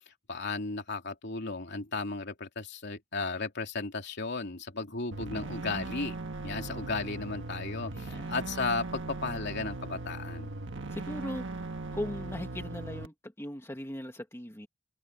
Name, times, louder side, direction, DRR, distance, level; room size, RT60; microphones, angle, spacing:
voice 1, 0.3-6.1 6.4-10.5, left 3 dB, 60° left, 3.1 m, -35 dB
sound 1, 5.1-13.1, right 2 dB, 65° right, 1.5 m, -39 dB
voice 2, 7.9-8.3 10.9-11.7 11.9-14.7, left 1 dB, 15° left, 1.9 m, -39 dB
head